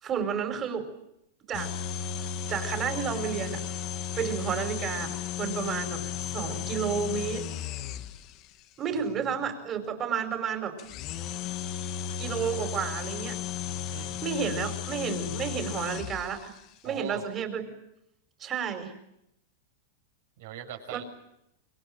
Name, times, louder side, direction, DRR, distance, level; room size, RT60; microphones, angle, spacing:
voice 1, 0.0-0.9 1.5-1.7 2.5-3.6 4.1-7.4 8.8-10.8 12.2-13.4 14.2-16.5 16.8-17.6 18.4-18.9 20.9-21.0, right 7 dB, 25° right, 7 dB, 5.1 m, -31 dB
sound 1, 1.5-8.5 10.8-16.6, left 8 dB, 40° left, 1.7 m, -34 dB
voice 2, 13.9-14.2 16.8-17.2 20.4-21.0, right 10 dB, 65° right, 5 dB, 6.5 m, -40 dB
26.5 x 23.0 x 9.1 m, 0.83 s
supercardioid pair, 140°, 0 cm